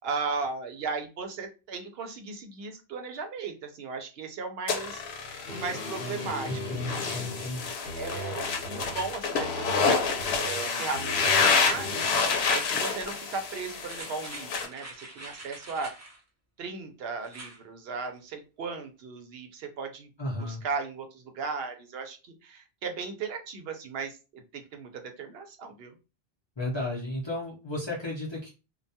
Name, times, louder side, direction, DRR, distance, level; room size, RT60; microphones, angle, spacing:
voice 1, 0.0-7.3 7.9-9.7 10.4-15.9 16.6-20.1 20.4-26.0, right 4 dB, 75° right, 5 dB, 0.8 m, -36 dB
sound 1, 4.7-14.7, left 5 dB, 90° left, 0.8 m, -28 dB
sound 2, 5.5-9.1 9.4-10.7 10.9-12.1, left 1 dB, 55° left, 1.0 m, -39 dB
voice 2, 6.4-7.7 20.2-20.6 26.6-28.5, left 2 dB, 30° left, -4 dB, 0.6 m, -33 dB
sound 3, 13.8-16.2 17.2-17.6 18.0-18.1, right 2 dB, 20° right, 0.5 m, -45 dB
2.3 x 2.2 x 2.6 m, 0.30 s
omnidirectional pair, 1.0 m